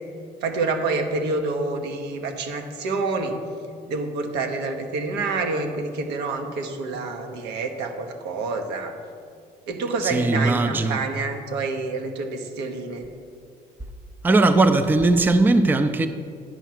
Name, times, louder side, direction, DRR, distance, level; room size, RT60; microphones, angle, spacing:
voice 1, 0.4-3.4 3.9-9.0 9.7-13.1, right 3 dB, 85° right, 4 dB, 1.0 m, -27 dB
voice 2, 10.0-11.0 14.2-16.1, right 2 dB, 10° right, 9 dB, 0.4 m, -19 dB
10.0 x 4.6 x 6.0 m, 2.2 s
cardioid pair, 110°, 17 cm